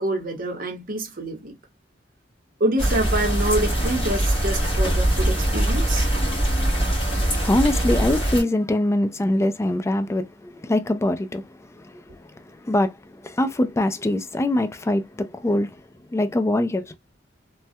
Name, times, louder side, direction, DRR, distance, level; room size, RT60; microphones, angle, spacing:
voice 1, 0.0-1.5 2.6-6.1, right 1 dB, 50° right, 0.9 m, -26 dB
sound 1, 2.8-8.4, right 1 dB, 30° left, 1.5 m, -22 dB
voice 2, 7.0-11.4 11.8-12.2 12.6-12.9 13.2-15.7 16.1-17.0, left 1 dB, 15° left, 0.3 m, -23 dB
3.1 x 2.3 x 2.6 m
head